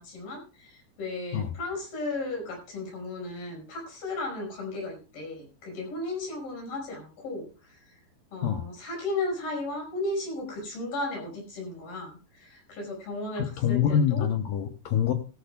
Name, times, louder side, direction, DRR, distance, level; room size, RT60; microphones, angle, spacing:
voice 1, 0.0-8.0 8.3-14.3, left 2 dB, 60° left, 1 dB, 7.1 m, -35 dB
voice 2, 13.4-15.1, left 8 dB, 75° left, 7 dB, 2.1 m, -25 dB
16.5 x 13.5 x 2.3 m, 0.34 s
omnidirectional pair, 4.9 m